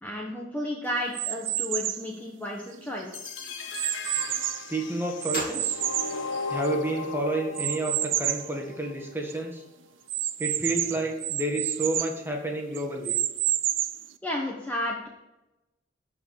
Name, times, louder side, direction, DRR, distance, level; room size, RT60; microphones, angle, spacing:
voice 1, 0.0-3.4 14.2-15.1, left 1 dB, 10° left, -2 dB, 1.1 m, -32 dB
sound 1, 1.1-2.1 2.7-4.7 5.2-6.9 7.5-8.5 9.0-9.1 9.3-9.4 10.1-12.2 12.7-14.1, right 12 dB, 80° right, 0.6 m, -29 dB
sound 2, 3.1-9.1, left 4 dB, 80° left, 1.2 m, -36 dB
Gunshot gunfire, 3.4-3.9 5.3-6.8, left 2 dB, 50° left, 2.9 m, -39 dB
voice 2, 4.7-5.8 6.5-9.6 10.4-13.2, right 2 dB, 10° right, 1 dB, 1.7 m, -30 dB
12.0 x 4.8 x 7.3 m, 0.98 s
head